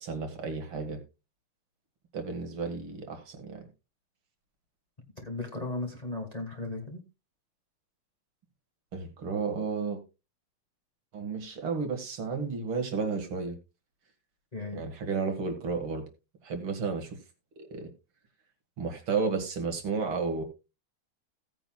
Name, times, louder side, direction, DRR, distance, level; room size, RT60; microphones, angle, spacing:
voice 1, 0.0-1.0 2.1-3.7 8.9-10.0 11.1-13.5 14.7-16.0 16.4-17.2 17.6-17.9 18.8-20.4, right 4 dB, 70° right, 5 dB, 2.7 m, -32 dB
voice 2, 5.2-7.0 14.5-14.8, left 2 dB, 20° left, 2 dB, 1.8 m, -36 dB
16.5 x 9.1 x 2.3 m, 0.28 s
omnidirectional pair, 2.3 m